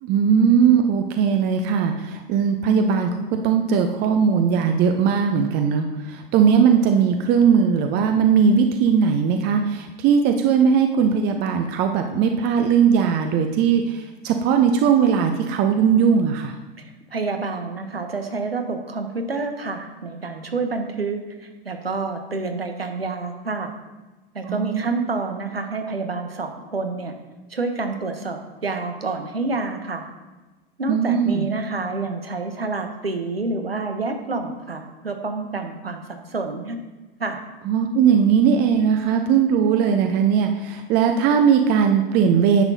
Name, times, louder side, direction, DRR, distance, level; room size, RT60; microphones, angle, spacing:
voice 1, 0.0-16.6 24.4-25.0 30.9-31.5 37.7-42.6, right 7 dB, 35° right, 5 dB, 0.7 m, -19 dB
voice 2, 17.1-23.7 24.3-27.1 27.5-30.1 30.8-36.0 36.3-36.8 37.2-37.4, right 3 dB, 90° right, 6 dB, 1.0 m, -28 dB
10.0 x 7.0 x 2.7 m, 1.2 s
figure-of-eight pair, 90°, 29 cm